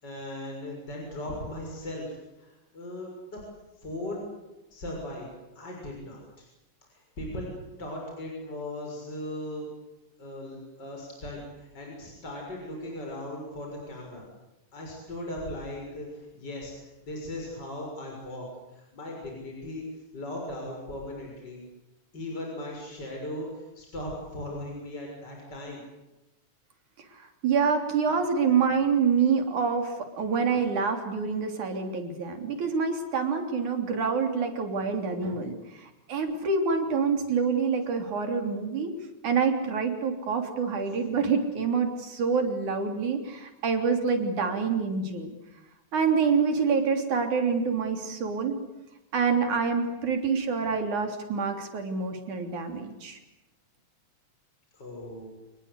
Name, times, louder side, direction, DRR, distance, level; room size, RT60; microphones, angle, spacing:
voice 1, 0.0-3.4 3.8-4.3 4.7-5.3 5.6-6.5 6.9-7.5 7.8-9.7 10.2-14.2 14.7-18.5 18.7-19.8 20.1-21.6 22.1-25.8 40.9-41.0 54.7-55.3, left 1 dB, 35° left, -1 dB, 7.2 m, -38 dB
voice 2, 27.1-38.9 39.2-45.3 45.9-48.6 49.1-53.2, right 5 dB, 80° right, 5 dB, 4.8 m, -27 dB
28.0 x 21.0 x 8.3 m, 0.99 s
omnidirectional pair, 3.4 m